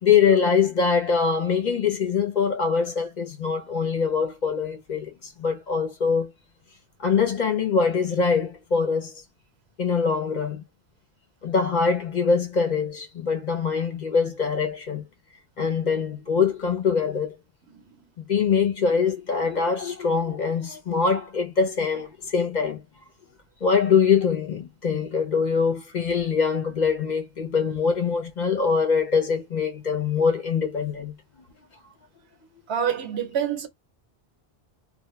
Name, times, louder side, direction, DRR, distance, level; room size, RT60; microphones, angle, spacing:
voice 1, 0.0-6.3 7.0-9.1 9.8-10.6 11.4-15.1 15.6-17.3 18.3-22.8 23.6-31.1, left 5 dB, 50° left, 0.7 m, -23 dB
voice 2, 32.7-33.7, right 8 dB, 80° right, 1.0 m, -26 dB
2.2 x 2.1 x 2.9 m
omnidirectional pair, 1.1 m